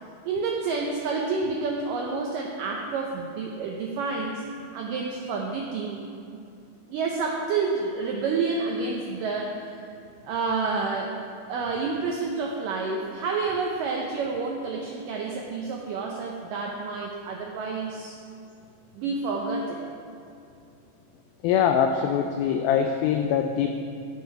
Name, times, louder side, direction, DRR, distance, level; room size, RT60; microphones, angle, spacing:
voice 1, 0.3-4.4 4.7-6.0 6.9-9.8 10.3-11.2 11.5-18.2 19.0-19.9, right 4 dB, 85° right, 0 dB, 1.9 m, -29 dB
voice 2, 21.4-23.7, left 8 dB, 90° left, 5 dB, 2.1 m, -23 dB
14.5 x 6.6 x 4.8 m, 2.5 s
omnidirectional pair, 4.8 m